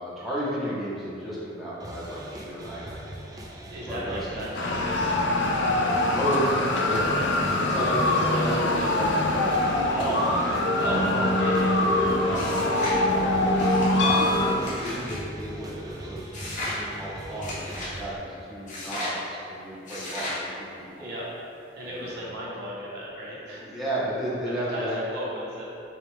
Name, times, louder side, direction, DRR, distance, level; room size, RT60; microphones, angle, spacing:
voice 1, 0.0-3.2 3.9-4.2 6.0-10.3 10.8-13.6 14.0-16.2 16.5-21.1 21.8-22.1 23.5-24.9, right 1 dB, ahead, -10 dB, 0.9 m, -33 dB
sound 1, 1.8-18.2, right 1 dB, 20° right, 0.4 m, -40 dB
voice 2, 3.7-6.0 6.6-6.8 7.8-8.9 10.1-12.2 12.4-12.6 21.0-21.2 21.7-23.7 24.4-25.7, right 1 dB, 60° right, -6 dB, 0.9 m, -35 dB
sound 2, 4.5-14.5, left 2 dB, 65° left, 0.5 m, -24 dB
sound 3, 12.3-13.0 13.6-15.2 16.3-16.8 17.4-17.9 18.7-19.2 19.9-20.4, left 1 dB, 45° left, 1.1 m, -35 dB
5.7 x 2.4 x 3.6 m, 2.7 s
head